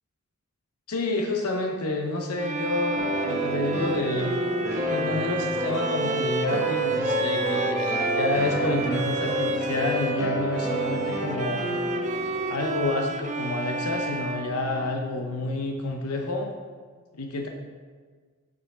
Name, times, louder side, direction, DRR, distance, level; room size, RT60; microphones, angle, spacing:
voice 1, 0.9-4.3 4.9-11.8 12.5-16.5 17.1-17.5, left 2 dB, 85° left, 2 dB, 0.8 m, -29 dB
Bowed string instrument, 2.4-10.2 10.5-15.3, right 3 dB, 30° right, 0.3 m, -32 dB
sound 1, 3.0-12.9, right 1 dB, 15° right, 1.0 m, -29 dB
6.8 x 5.0 x 4.9 m, 1.5 s
head